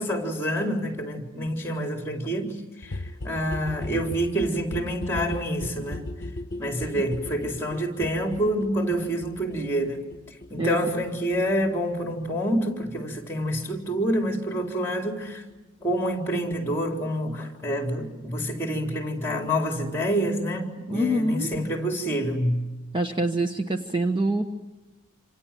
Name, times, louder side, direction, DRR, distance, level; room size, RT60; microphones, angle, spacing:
voice 1, 0.0-2.6 2.8-6.0 6.6-10.0 10.5-15.4 15.8-22.6, equal, 10° left, 4.1 m, -27 dB
sound 1, 2.8-14.3 14.6-14.7 14.9-15.0 15.2-15.3 15.5-15.6 15.8-15.9 16.1-16.2, left 1 dB, 50° left, 1.1 m, -38 dB
voice 2, 20.9-21.5 22.9-24.4, right 1 dB, 20° right, 1.2 m, -25 dB
28.0 x 27.0 x 7.6 m
head